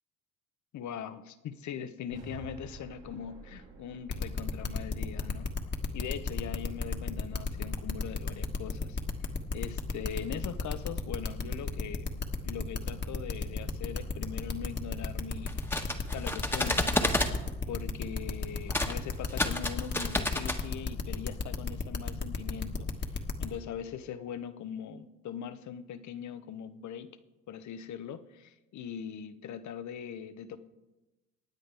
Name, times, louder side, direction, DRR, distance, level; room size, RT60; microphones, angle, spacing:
voice 1, 0.7-5.5 5.9-9.0 9.2-15.7 16.1-17.2 17.7-27.1 27.5-30.6, left 8 dB, 70° left, 11 dB, 1.0 m, -41 dB
sound 1, 2.1-6.3, right 3 dB, 85° right, 3.0 m, -51 dB
sound 2, 4.1-23.5, left 4 dB, 35° left, 1.5 m, -33 dB
sound 3, 15.5-17.3 18.7-18.9 19.3-20.6, left 1 dB, 5° left, 1.4 m, -30 dB
25.0 x 9.4 x 3.4 m, 1.1 s
cardioid pair, 90°, 30 cm